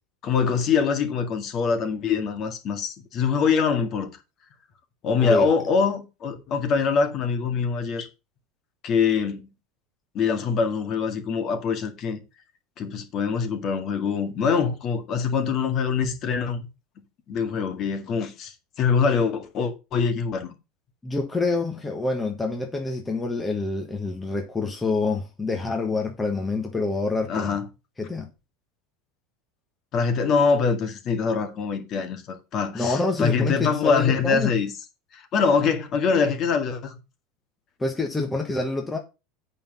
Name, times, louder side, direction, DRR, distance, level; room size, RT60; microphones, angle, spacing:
voice 1, 0.2-4.1 5.0-8.1 8.8-9.5 10.1-12.2 12.8-16.7 17.3-20.5 27.3-27.7 29.9-34.7 35.1-37.0, left 5 dB, 35° left, 2.0 m, -24 dB
voice 2, 21.0-27.6 28.0-28.3 32.7-34.5 37.8-39.0, left 3 dB, 10° left, 1.4 m, -27 dB
8.6 x 5.8 x 5.6 m
supercardioid pair, 155°, 0 cm